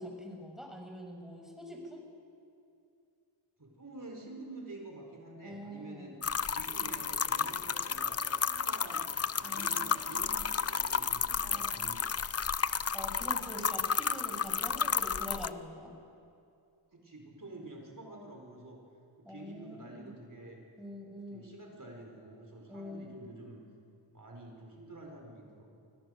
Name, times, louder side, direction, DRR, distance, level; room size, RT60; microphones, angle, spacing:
voice 1, 0.0-2.0 5.4-6.1 9.4-10.5 11.4-11.9 12.9-15.9 19.2-20.1 20.8-21.6 22.7-23.3, equal, ahead, 1 dB, 6.9 m, -45 dB
voice 2, 3.6-9.1 9.4-12.2 16.9-18.8 19.2-20.6 21.3-23.6 24.1-25.8, right 2 dB, 40° right, 1 dB, 4.8 m, -48 dB
sound 1, 6.2-15.5, left 6 dB, 30° left, 0.6 m, -32 dB
25.5 x 17.0 x 6.7 m, 2.5 s
cardioid pair, 40°, 48 cm